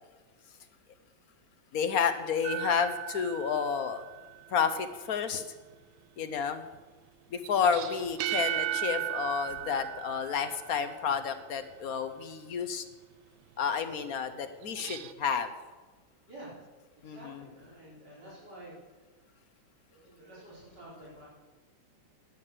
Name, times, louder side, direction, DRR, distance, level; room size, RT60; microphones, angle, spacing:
voice 1, 1.7-4.0 4.5-5.4 6.2-6.6 7.3-12.8 13.6-15.5 17.0-17.5, left 6 dB, 55° left, 9 dB, 1.2 m, -30 dB
sound 1, 2.4-4.4 7.4-11.1 14.6-15.1, right 12 dB, 85° right, 1.4 m, -36 dB
voice 2, 17.0-18.7 19.9-21.3, right 1 dB, 60° right, -8 dB, 5.1 m, -49 dB
13.5 x 9.2 x 6.7 m, 1.3 s
omnidirectional pair, 2.1 m